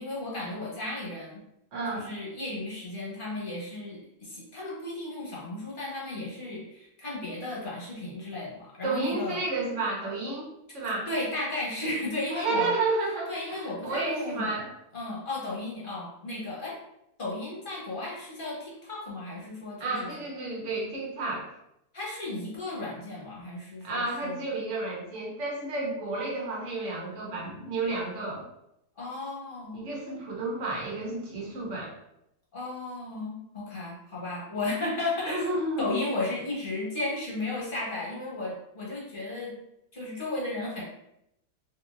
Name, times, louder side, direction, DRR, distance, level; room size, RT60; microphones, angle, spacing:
voice 1, 0.0-1.4 1.9-9.4 11.1-12.7 13.3-14.5 14.9-16.8 17.2-20.1 21.9-24.4 29.0-29.9 32.5-35.5 35.8-39.6 39.9-40.8, left 2 dB, 40° left, -5 dB, 1.0 m, -34 dB
voice 2, 1.7-2.1 8.8-11.1 12.3-14.7 19.8-21.5 23.8-28.5 29.7-32.0 35.2-36.0, right 2 dB, 55° right, -3 dB, 1.2 m, -31 dB
3.7 x 2.8 x 2.5 m, 0.82 s
omnidirectional pair, 1.6 m